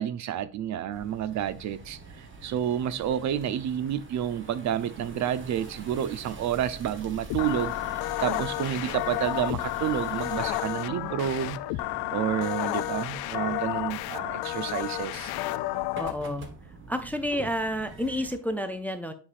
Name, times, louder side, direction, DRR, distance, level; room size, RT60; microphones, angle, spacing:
voice 1, 0.0-11.8 12.1-15.3, right 10 dB, 50° right, 0.5 m, -30 dB
sound 1, 0.9-18.4, right 3 dB, 30° right, 1.1 m, -45 dB
sound 2, 7.3-16.1, left 18 dB, 80° left, 0.5 m, -31 dB
voice 2, 16.0-16.5 16.9-19.1, equal, 5° left, 0.4 m, -30 dB
10.0 x 4.8 x 2.5 m
cardioid pair, 160°, 37 cm